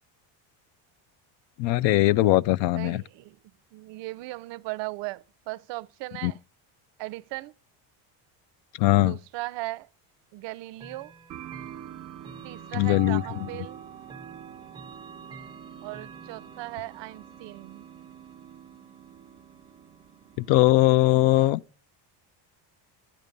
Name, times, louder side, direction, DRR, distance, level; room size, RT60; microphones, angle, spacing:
voice 1, 1.6-3.0 6.2-6.3 8.8-9.2 12.7-13.2 20.4-21.6, left 17 dB, 65° left, 0.5 m, -20 dB
voice 2, 2.7-3.4 3.7-6.4 7.0-7.5 9.0-9.9 10.3-11.1 12.4-13.8 15.8-17.8, right 20 dB, 65° right, 0.6 m, -37 dB
Chime / Clock, 10.7-21.6, right 6 dB, 10° right, 0.6 m, -48 dB
sound 1, 11.3-20.8, right 11 dB, 35° right, 1.1 m, -47 dB
12.5 x 10.0 x 5.2 m
cardioid pair, 150°, 48 cm